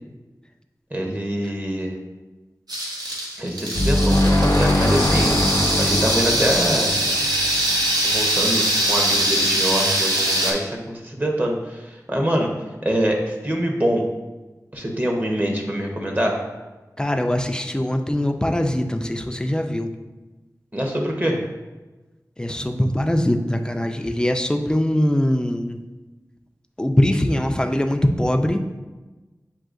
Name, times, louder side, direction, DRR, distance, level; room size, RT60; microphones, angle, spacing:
voice 1, 0.9-1.9 3.3-5.3 5.8-7.0 8.0-12.5 12.8-14.1 14.7-16.4 20.7-21.4, equal, 25° right, 0 dB, 0.8 m, -24 dB
sound 1, 2.7-10.5, right 1 dB, 80° right, 0.8 m, -22 dB
sound 2, 3.7-8.3, left 1 dB, 85° left, 0.7 m, -21 dB
voice 2, 17.0-19.9 22.4-25.8 26.8-28.6, left 1 dB, 10° left, 6 dB, 0.4 m, -22 dB
7.5 x 2.7 x 2.5 m, 1.2 s
wide cardioid pair, 60°, 7 cm